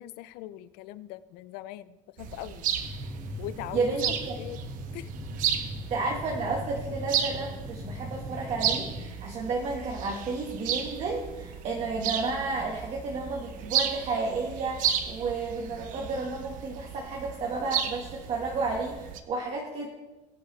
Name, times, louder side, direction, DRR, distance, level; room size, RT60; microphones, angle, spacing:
voice 1, 0.0-2.6 3.4-4.6 4.9-5.4, left 14 dB, 70° left, 16 dB, 0.6 m, -41 dB
sound 1, 2.2-19.2, right 9 dB, 55° right, 1.0 m, -34 dB
sound 2, 2.8-9.0, left 1 dB, ahead, 2.1 m, -39 dB
voice 2, 3.7-4.4 5.9-19.9, right 3 dB, 40° right, -1 dB, 1.6 m, -32 dB
20.5 x 8.9 x 3.3 m, 1.1 s
cardioid pair, 160°, 16 cm